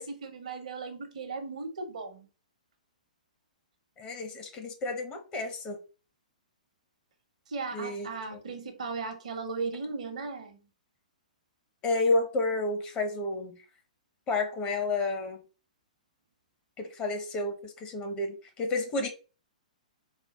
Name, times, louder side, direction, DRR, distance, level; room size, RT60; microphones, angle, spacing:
voice 1, 0.0-2.3 7.5-10.6, right 4 dB, 60° right, 7 dB, 1.1 m, -37 dB
voice 2, 4.0-5.8 7.7-8.4 11.8-13.6 14.3-15.4 16.8-19.1, left 2 dB, 25° left, 5 dB, 1.1 m, -31 dB
4.2 x 2.3 x 4.1 m, 0.33 s
figure-of-eight pair, 115°, 4 cm